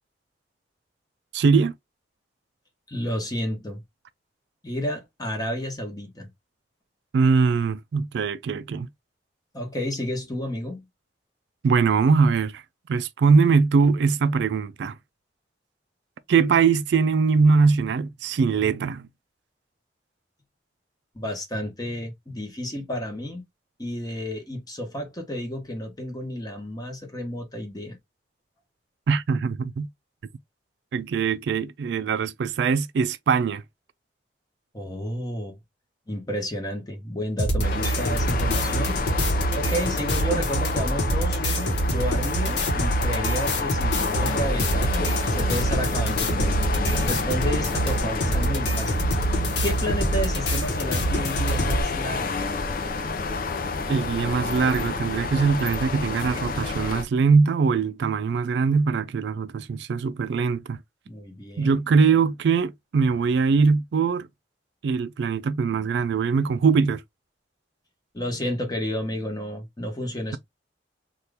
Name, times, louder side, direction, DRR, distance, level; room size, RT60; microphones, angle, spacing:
voice 1, 1.3-1.7 7.1-8.9 11.6-12.6 12.9-15.0 16.3-19.1 29.1-29.9 30.9-33.6 53.9-60.8 61.6-64.3 64.8-67.0, right 5 dB, 70° right, 0.3 m, -22 dB
voice 2, 2.9-3.8 4.6-6.3 9.5-10.9 21.1-23.4 23.8-28.0 34.7-35.6 36.1-39.0 39.5-46.6 47.0-49.1 49.6-52.4 61.1-61.7 68.1-70.4, equal, 20° left, 1.0 m, -31 dB
sound 1, 37.4-51.8, right 1 dB, 70° left, 1.0 m, -25 dB
sound 2, 37.6-57.0, left 3 dB, 50° left, 0.5 m, -29 dB
2.8 x 2.4 x 3.3 m
head